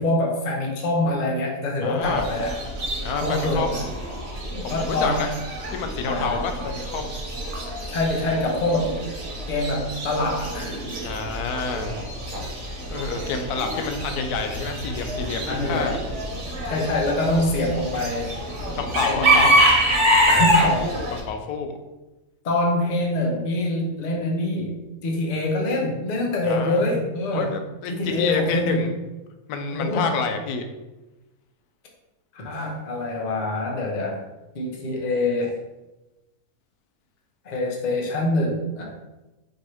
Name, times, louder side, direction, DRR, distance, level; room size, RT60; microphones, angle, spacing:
voice 1, 0.0-2.5 3.2-3.7 4.5-5.3 6.0-6.4 7.9-9.2 9.5-10.8 15.5-16.0 16.6-18.4 18.7-18.8 19.0-19.5 20.3-20.9 22.4-27.6 27.9-28.9 29.7-30.1 32.3-34.2 34.5-35.5 37.4-38.9, left 1 dB, 40° left, -1 dB, 0.6 m, -25 dB
voice 2, 1.8-2.3 3.0-3.8 4.6-5.3 5.7-7.1 11.0-11.9 12.9-16.0 18.8-19.6 20.6-21.8 26.4-26.9 27.3-28.9 29.5-30.6, left 5 dB, 90° left, 6 dB, 1.1 m, -28 dB
Chicken rooster / Bird, 2.0-21.2, right 1 dB, 55° right, 1.3 m, -26 dB
4.6 x 3.1 x 3.0 m, 1.1 s
omnidirectional pair, 1.6 m